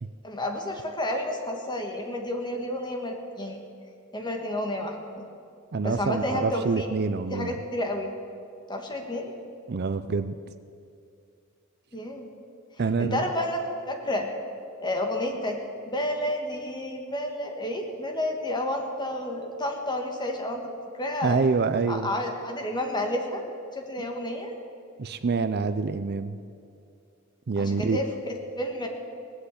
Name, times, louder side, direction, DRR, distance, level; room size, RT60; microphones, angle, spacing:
voice 1, 0.2-3.7 4.1-5.2 5.8-6.9 7.3-8.1 8.7-9.3 11.9-12.3 13.0-14.3 14.8-15.6 15.9-21.4 21.9-23.4 23.7-24.5 27.6-28.9, left 1 dB, 20° left, 3 dB, 1.6 m, -30 dB
voice 2, 5.7-7.5 9.7-10.3 12.8-13.2 21.2-22.1 25.0-26.4 27.5-28.0, right 4 dB, 50° right, 12 dB, 0.5 m, -26 dB
18.5 x 8.0 x 8.3 m, 2.4 s
head